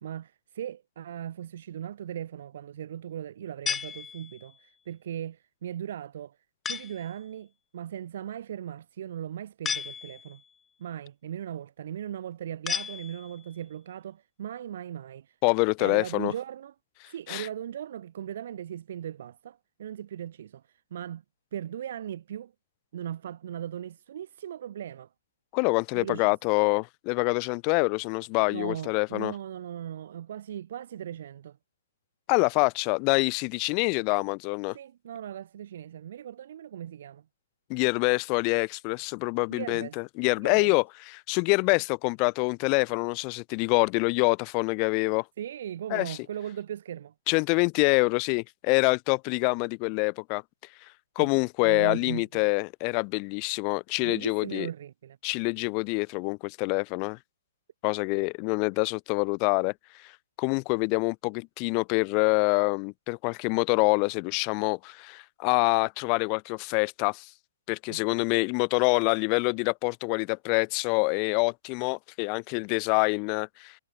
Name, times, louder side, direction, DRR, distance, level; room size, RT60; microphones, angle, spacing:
voice 1, 0.0-6.4 6.6-10.4 10.8-15.4 15.8-16.7 17.1-21.2 21.5-22.5 22.9-25.1 25.9-26.4 28.5-31.6 34.7-37.2 39.5-40.0 40.4-40.7 45.4-47.1 51.2-51.3 51.6-52.5 54.0-55.2 67.9-68.2, right 10 dB, 60° right, 1.3 m, -38 dB
sound 1, 3.7-4.6 6.6-7.1 9.6-10.5 12.7-13.5, left 7 dB, 15° left, 2.1 m, -34 dB
voice 2, 15.4-16.3 17.3-17.5 25.5-29.3 32.3-34.8 37.7-40.8 41.3-45.2 45.9-46.2 47.3-50.4 51.2-54.7 55.2-57.2 57.8-59.7 60.4-67.3 67.7-73.7, left 36 dB, 35° left, 0.7 m, -26 dB
hypercardioid pair, 140°, 0 cm